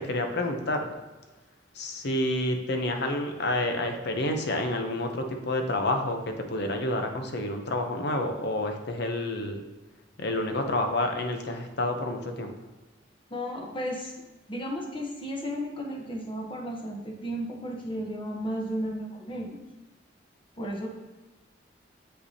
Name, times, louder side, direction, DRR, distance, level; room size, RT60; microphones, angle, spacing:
voice 1, 0.1-0.9 1.8-9.6 10.2-12.5, left 1 dB, 60° left, 5 dB, 0.8 m, -29 dB
voice 2, 13.3-14.1 14.5-19.6 20.6-20.9, equal, 25° left, 0 dB, 1.0 m, -34 dB
8.0 x 5.5 x 2.8 m, 1.1 s
head